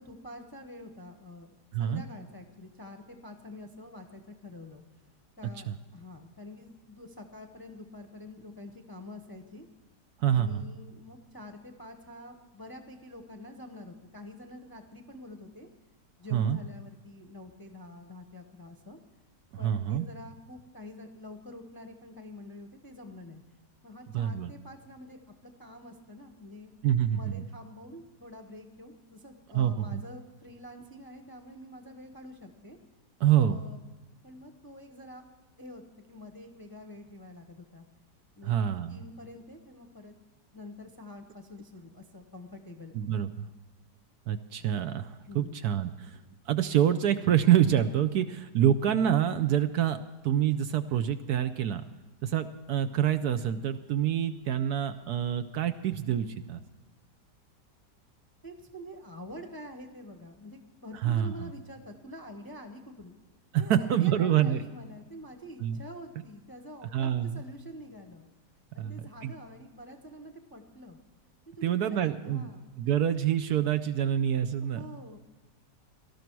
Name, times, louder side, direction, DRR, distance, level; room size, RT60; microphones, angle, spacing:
voice 1, 0.0-4.8 5.4-9.7 10.2-15.7 16.2-19.0 19.6-23.4 23.8-26.7 27.1-32.8 33.4-33.8 34.2-35.2 35.6-37.8 38.3-38.5 38.9-40.1 40.5-43.0 45.3-45.6 58.4-63.1 63.5-68.3 68.7-71.0 71.6-72.7 74.7-75.2, left 1 dB, 15° left, 4 dB, 0.7 m, -47 dB
voice 2, 10.2-10.6 16.3-16.6 19.6-20.1 24.1-24.5 26.8-27.4 29.5-30.0 33.2-33.6 38.4-39.0 42.9-43.5 44.3-46.2 46.5-50.0 50.2-51.8 52.2-56.6 61.0-61.5 63.5-64.6 65.6-65.8 66.9-67.4 68.8-69.3 71.6-74.8, right 10 dB, 70° right, 10 dB, 1.1 m, -27 dB
18.5 x 13.0 x 4.6 m, 1.3 s
omnidirectional pair, 1.9 m